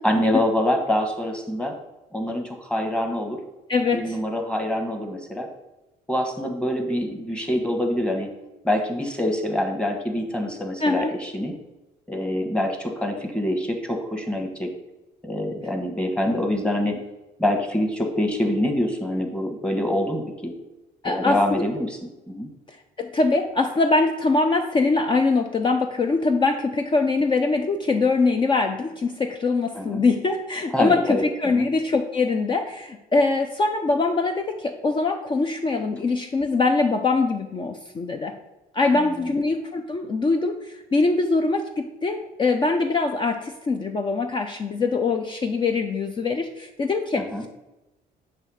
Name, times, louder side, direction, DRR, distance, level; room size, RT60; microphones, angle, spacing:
voice 1, 0.0-1.7 2.1-3.4 3.9-5.5 6.1-8.3 8.6-11.5 12.1-14.7 15.2-17.0 17.4-20.5 21.0-22.0 22.3-22.5 29.7-30.0 30.7-31.3 31.5-31.7 38.9-39.4 47.2-47.4, left 1 dB, 5° left, 3 dB, 1.2 m, -25 dB
voice 2, 3.7-4.2 10.8-11.1 21.0-21.6 22.7-38.3 38.7-47.5, left 3 dB, 30° left, 4 dB, 0.5 m, -23 dB
7.4 x 3.3 x 6.3 m, 1.0 s
cardioid pair, 110°, 17 cm